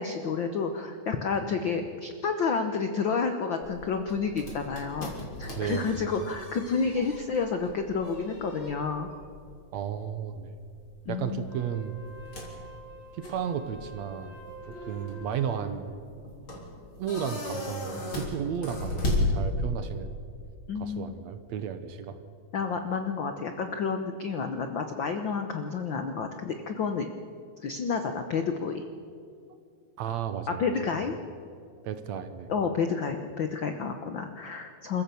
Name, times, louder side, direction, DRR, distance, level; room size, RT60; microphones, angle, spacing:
voice 1, 0.0-5.1 5.4-9.1 11.1-11.5 20.7-21.1 22.5-27.1 27.6-28.8 30.6-31.1 32.5-35.0, left 5 dB, 70° left, 6 dB, 1.1 m, -30 dB
sound 1, 3.6-20.0, left 1 dB, 40° left, 4.2 m, -36 dB
voice 2, 5.6-6.1 9.7-10.6 11.1-12.0 13.1-14.4 14.7-15.9 17.0-20.1 20.8-22.2 30.0-30.6 31.8-32.5, right 8 dB, 70° right, 10 dB, 2.1 m, -33 dB
Wind instrument woodwind instrument, 11.4-15.7, right 2 dB, 20° left, 6.2 m, -48 dB
27.5 x 15.0 x 7.0 m, 2.4 s
omnidirectional pair, 3.6 m